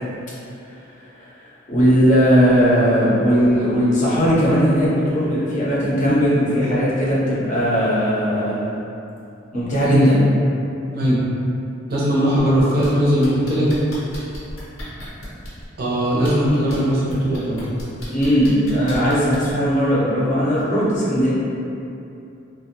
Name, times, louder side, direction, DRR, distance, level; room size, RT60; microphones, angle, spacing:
voice 1, 1.7-8.6 9.5-10.2 18.1-21.3, equal, 40° left, -9 dB, 0.6 m, -18 dB
voice 2, 11.9-13.7 15.8-17.7, equal, 50° right, -7 dB, 0.6 m, -19 dB
sound 1, 12.4-12.9 13.2-15.7 16.2-16.8 17.1-19.5 20.6-20.7, left 1 dB, 85° left, 0.7 m, -35 dB
2.5 x 2.0 x 2.7 m, 2.7 s
head